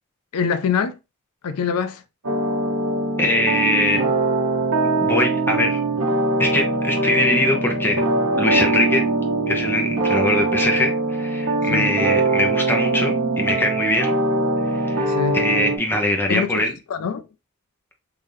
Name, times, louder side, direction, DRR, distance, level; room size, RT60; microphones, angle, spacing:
voice 1, 0.3-1.0 1.4-2.0 11.7-11.9 15.1-15.4 16.3-16.6 16.9-17.2, left 6 dB, 85° left, 0.4 m, -24 dB
sound 1, 2.2-15.8, right 2 dB, 90° right, 1.0 m, -22 dB
voice 2, 3.2-4.0 5.0-5.8 6.4-8.0 8.4-9.0 9.5-14.1 14.7-16.7, left 1 dB, 10° left, 0.8 m, -22 dB
3.8 x 2.7 x 3.1 m
head